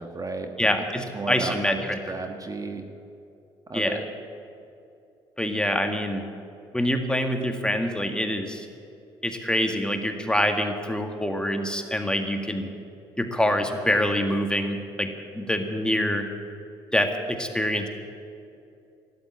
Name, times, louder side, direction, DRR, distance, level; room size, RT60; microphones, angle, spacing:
voice 1, 0.0-0.7 1.1-1.8 2.1-2.8 3.7-4.0, right 3 dB, 30° right, 5 dB, 1.5 m, -33 dB
voice 2, 0.6-2.0 3.7-4.0 5.4-6.3 6.7-8.7 9.2-12.7 13.2-16.3 16.9-17.9, left 1 dB, 5° left, 5 dB, 1.9 m, -25 dB
13.0 x 11.0 x 9.5 m, 2.6 s
hypercardioid pair, 55°, 12 cm